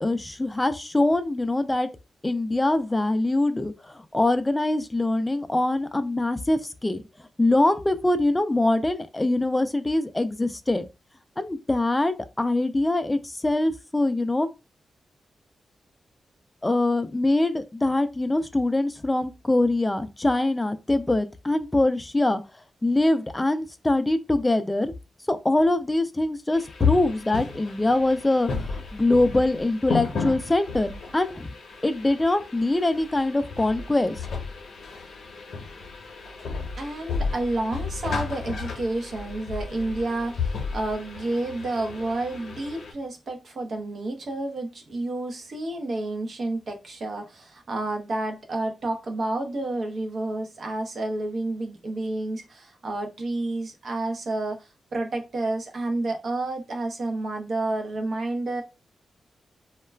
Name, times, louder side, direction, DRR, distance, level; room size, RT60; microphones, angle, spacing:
voice 1, 0.0-1.9 2.2-7.0 7.4-10.8 11.4-14.5 16.6-22.4 22.8-24.9 25.3-31.5 31.8-34.3, left 2 dB, 15° left, 0.3 m, -23 dB
sound 1, 26.5-42.9, left 5 dB, 80° left, 0.7 m, -33 dB
voice 2, 36.8-58.6, right 2 dB, 60° right, 0.7 m, -30 dB
2.3 x 2.1 x 3.2 m
wide cardioid pair, 120°, 0 cm